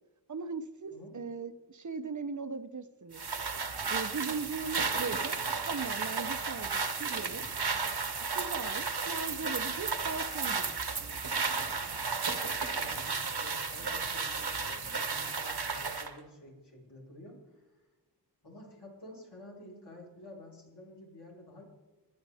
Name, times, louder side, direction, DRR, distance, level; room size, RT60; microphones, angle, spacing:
voice 1, 0.3-3.2 3.9-7.5 8.3-11.8, right 4 dB, 45° right, 11 dB, 0.9 m, -39 dB
sound 1, 3.1-16.1, right 5 dB, 70° right, 1.3 m, -33 dB
voice 2, 12.8-17.6 18.4-21.6, left 1 dB, 75° left, -4 dB, 4.6 m, -51 dB
24.5 x 9.5 x 3.5 m, 1.2 s
wide cardioid pair, 70°, 41 cm